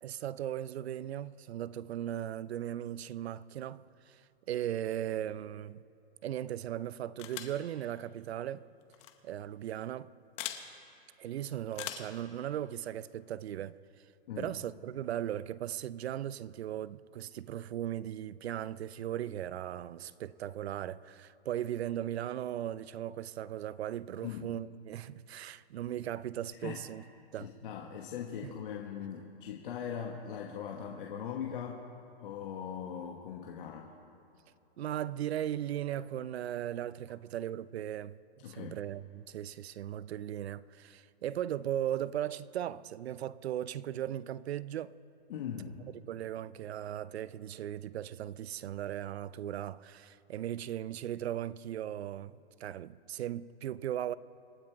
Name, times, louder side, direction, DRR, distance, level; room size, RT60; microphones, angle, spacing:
voice 1, 0.0-4.2 4.5-5.8 6.2-8.6 9.2-10.1 11.2-13.8 14.4-27.0 27.3-27.5 28.4-28.5 34.8-44.9 46.1-54.2, right 11 dB, 80° right, 0.6 m, -37 dB
sound 1, 7.2-7.6 8.9-9.1 10.4-10.6 11.7-12.2, left 12 dB, 20° left, 0.7 m, -40 dB
voice 2, 27.4-31.8 32.2-33.9 38.4-38.7 45.3-45.8, left 8 dB, 55° left, 1.4 m, -40 dB
26.5 x 9.6 x 4.6 m
hypercardioid pair, 155°, 32 cm